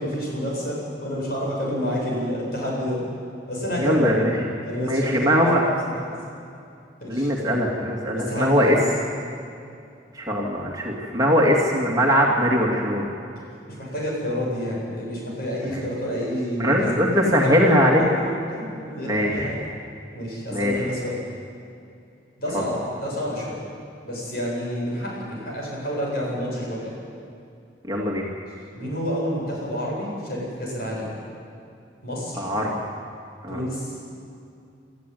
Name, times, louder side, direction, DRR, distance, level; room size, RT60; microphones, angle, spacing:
voice 1, 0.0-3.0 3.5-4.1 4.6-6.1 7.0-7.3 8.1-8.8 13.7-19.6 20.1-21.2 22.4-23.6 24.0-26.9 28.7-31.1 32.0-32.4 33.5-33.9, equal, 55° left, -4 dB, 7.9 m, -29 dB
voice 2, 3.8-4.5 4.9-5.6 7.1-8.8 9.2-9.3 10.1-13.1 15.7-15.8 16.6-18.1 19.1-19.5 20.5-20.9 22.5-22.6 27.8-28.3 32.4-32.7 33.4-33.6, equal, 20° right, -2 dB, 2.5 m, -21 dB
28.0 x 14.0 x 9.4 m, 2.5 s
head